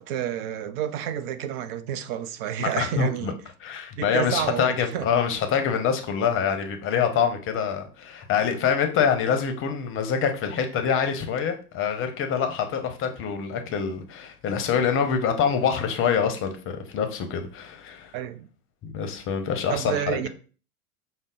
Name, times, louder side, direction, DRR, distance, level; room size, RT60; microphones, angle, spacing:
voice 1, 0.0-3.4 4.0-5.0 18.1-18.5 19.7-20.3, right 10 dB, 45° right, 0.5 m, -29 dB
voice 2, 2.6-3.3 3.6-18.1 18.8-20.3, left 7 dB, 30° left, 0.7 m, -25 dB
5.2 x 2.0 x 3.7 m
hypercardioid pair, 105°, 44 cm